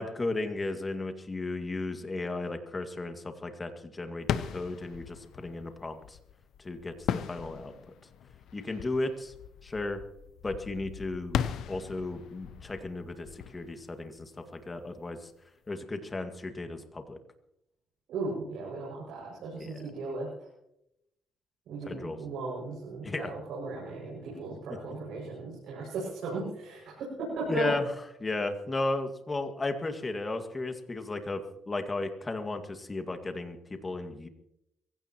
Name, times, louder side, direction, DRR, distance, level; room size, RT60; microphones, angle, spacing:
voice 1, 0.0-6.2 6.6-7.7 8.5-9.3 9.6-10.0 10.4-11.4 11.7-15.3 15.7-17.2 19.6-19.8 21.8-22.2 23.0-23.3 27.5-27.9 28.2-34.3, left 2 dB, 25° left, 6 dB, 2.1 m, -34 dB
sound 1, 4.2-14.8, left 9 dB, 80° left, 0.8 m, -38 dB
voice 2, 18.1-20.3 21.7-27.7, right 3 dB, 85° right, -5 dB, 6.3 m, -36 dB
24.0 x 16.0 x 3.0 m, 0.82 s
cardioid pair, 85°, 0 cm